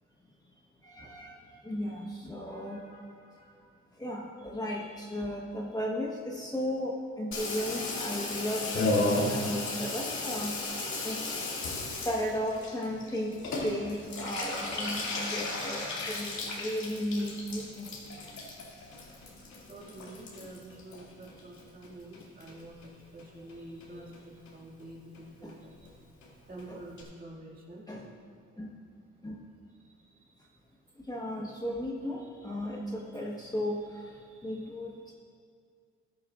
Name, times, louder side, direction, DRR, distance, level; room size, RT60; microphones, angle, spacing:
voice 1, 0.9-1.4 1.6-3.0 4.0-10.6 11.0-11.2 12.0-17.9 25.4-25.5 26.7-26.8 27.9-28.1 28.6-28.8 29.2-29.5 31.1-33.9 34.4-35.1, equal, 15° left, -3 dB, 1.3 m, -35 dB
Water tap faucet / Bathtub (filling or washing), 7.3-21.9 22.1-22.9 23.2-23.3 23.5-23.6 23.8-24.2 24.5-24.6 24.8-24.9 25.1-25.2 25.5-25.6 25.8-25.9 26.2-26.3 26.6-26.7 27.0-27.1, left 2 dB, 65° left, 2.5 m, -35 dB
voice 2, 19.7-25.8 26.5-27.9, right 1 dB, 30° right, -4 dB, 2.3 m, -47 dB
15.0 x 11.0 x 2.5 m, 2.2 s
cardioid pair, 90°, 30 cm